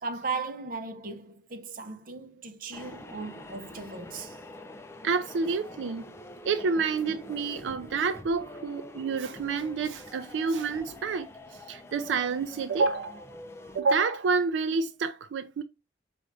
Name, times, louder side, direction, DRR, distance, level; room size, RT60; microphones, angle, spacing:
voice 1, 0.0-4.4, right 4 dB, 50° right, 0.7 m, -37 dB
sound 1, 2.7-13.8, left 1 dB, 15° left, 0.4 m, -45 dB
voice 2, 5.0-6.0 6.4-13.3 13.7-15.6, right 4 dB, 85° right, 0.4 m, -28 dB
4.8 x 2.5 x 3.1 m
head